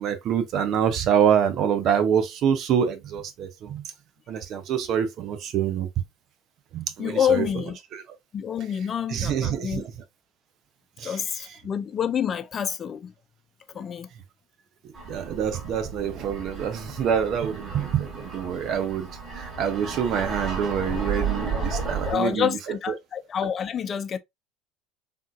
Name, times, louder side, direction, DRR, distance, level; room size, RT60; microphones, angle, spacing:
voice 1, 0.0-3.8 4.3-5.9 6.7-7.5 7.9-8.0 9.1-10.0 11.0-11.5 15.1-19.1 19.3-22.6, right 8 dB, 55° right, 0.7 m, -26 dB
voice 2, 7.0-7.8 8.3-9.8 11.0-13.1 13.7-14.1 21.5-24.2, left 8 dB, 40° left, 0.4 m, -28 dB
sound 1, 14.9-22.1, right 5 dB, 30° right, 2.0 m, -33 dB
3.6 x 2.6 x 2.3 m
hypercardioid pair, 75°, 0 cm